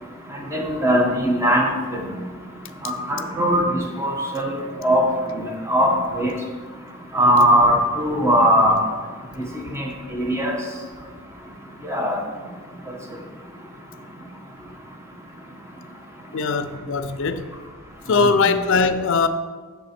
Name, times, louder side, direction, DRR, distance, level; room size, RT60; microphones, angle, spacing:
voice 1, 0.5-2.0 2.8-4.4 4.8-5.0 5.3-6.3 7.1-8.8 9.4-9.5 9.7-9.9 10.1-10.6 11.8-12.2 18.2-18.3, equal, 15° right, 0 dB, 1.0 m, -19 dB
voice 2, 16.3-17.5 18.1-19.3, left 4 dB, 60° left, 11 dB, 0.4 m, -20 dB
10.5 x 3.5 x 4.3 m, 1.5 s
head